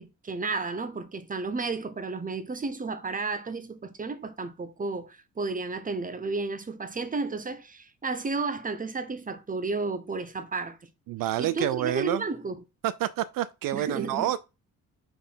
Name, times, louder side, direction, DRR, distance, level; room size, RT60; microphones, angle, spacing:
voice 1, 0.0-10.8 11.4-12.6 13.7-14.4, right 3 dB, 25° right, 1.1 m, -32 dB
voice 2, 11.1-12.2 12.8-14.4, right 12 dB, 75° right, 0.5 m, -28 dB
5.5 x 4.3 x 5.6 m
cardioid pair, 100°, 34 cm